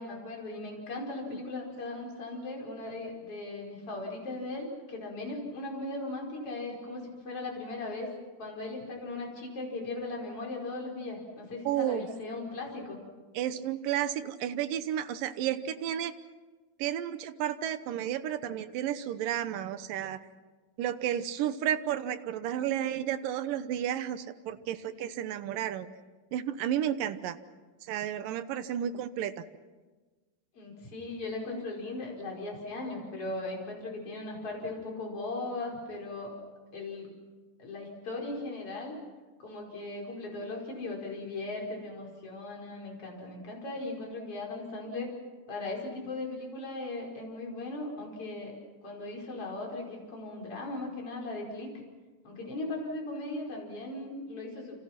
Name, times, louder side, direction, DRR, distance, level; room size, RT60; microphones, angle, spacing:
voice 1, 0.0-8.1 8.4-13.0 30.5-36.3 36.7-37.1 37.6-38.9 39.4-45.1 45.5-48.6 48.8-51.7 52.2-54.8, left 2 dB, 40° left, -1 dB, 5.9 m, -38 dB
voice 2, 11.7-12.1 13.3-16.1 16.8-20.2 20.8-25.9 26.3-27.4 27.8-29.4, right 10 dB, 75° right, 12 dB, 2.5 m, -32 dB
29.5 x 26.5 x 5.9 m, 1.3 s
omnidirectional pair, 4.2 m